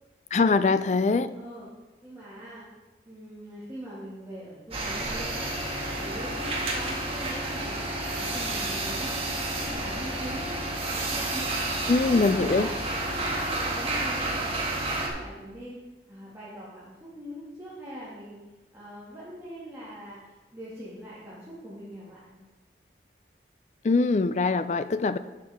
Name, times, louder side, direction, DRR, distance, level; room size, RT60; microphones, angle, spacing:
voice 1, 0.3-1.3 11.9-12.7 23.8-25.2, left 3 dB, 40° left, 12 dB, 0.3 m, -23 dB
voice 2, 1.3-1.7 2.0-2.6 3.0-5.5 6.0-7.8 8.1-10.6 10.9-15.8 16.1-18.4 18.7-20.2 20.5-22.4, equal, 15° right, -10 dB, 2.2 m, -42 dB
sound 1, 4.7-15.1, right 2 dB, 30° right, 1.5 m, -30 dB
11.5 x 6.7 x 3.6 m, 1.2 s
head